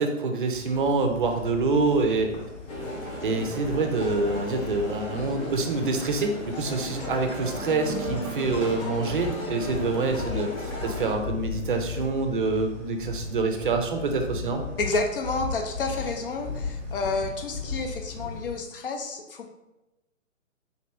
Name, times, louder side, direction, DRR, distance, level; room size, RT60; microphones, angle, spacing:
voice 1, 0.0-2.3 3.2-14.6, right 3 dB, 40° right, 5 dB, 0.5 m, -26 dB
sound 1, 0.5-18.6, left 4 dB, 10° left, 1.0 m, -37 dB
sound 2, 2.7-11.1, left 2 dB, 90° left, 1.2 m, -35 dB
voice 2, 14.8-19.5, left 3 dB, 45° left, 4 dB, 0.6 m, -30 dB
3.9 x 2.9 x 3.3 m, 0.98 s
figure-of-eight pair, 145°, 39 cm